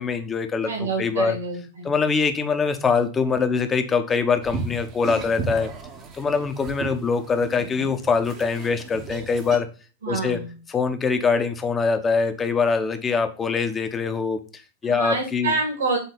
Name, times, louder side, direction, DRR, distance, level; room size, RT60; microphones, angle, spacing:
voice 1, 0.0-1.4 1.8-5.7 6.1-9.7 10.1-10.4 10.7-15.5, left 5 dB, 20° left, 8 dB, 1.0 m, -23 dB
voice 2, 0.6-1.9 10.0-10.5 14.8-16.0, right 3 dB, 70° right, 1 dB, 2.4 m, -27 dB
sound 1, 4.4-9.6, right 4 dB, 30° right, 1.1 m, -35 dB
7.0 x 3.9 x 4.0 m, 0.34 s
figure-of-eight pair, 90°, 0 cm